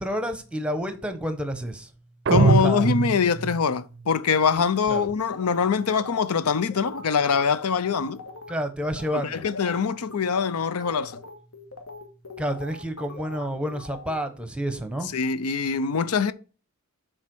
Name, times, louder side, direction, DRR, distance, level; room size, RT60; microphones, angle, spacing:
voice 1, 0.0-1.9 2.3-2.9 4.9-5.1 8.5-9.4 12.4-15.1, equal, 5° right, 1.0 m, -29 dB
voice 2, 2.3-8.2 9.2-11.2 15.1-16.3, left 6 dB, 85° left, 0.6 m, -23 dB
sound 1, 2.3-3.7, right 4 dB, 55° right, 0.5 m, -22 dB
sound 2, 5.3-8.5 8.8-9.1 9.4-14.2, left 3 dB, 70° left, 1.7 m, -41 dB
7.5 x 4.6 x 6.0 m
head